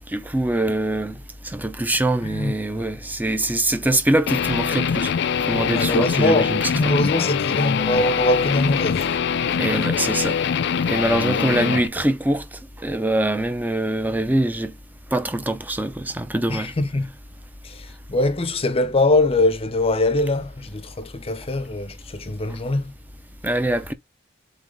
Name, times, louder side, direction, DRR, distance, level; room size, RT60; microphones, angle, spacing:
voice 1, 0.1-1.2 1.4-5.1 5.5-7.0 9.5-10.4 10.9-12.4 12.8-14.7 15.1-16.7 23.4-23.9, right 1 dB, 10° right, 0.6 m, -23 dB
voice 2, 2.2-2.9 5.7-9.2 16.5-17.1 17.6-22.9, left 2 dB, 30° left, 0.7 m, -22 dB
Guitar, 4.3-11.9, left 7 dB, 60° left, 0.4 m, -23 dB
3.9 x 3.8 x 3.3 m
head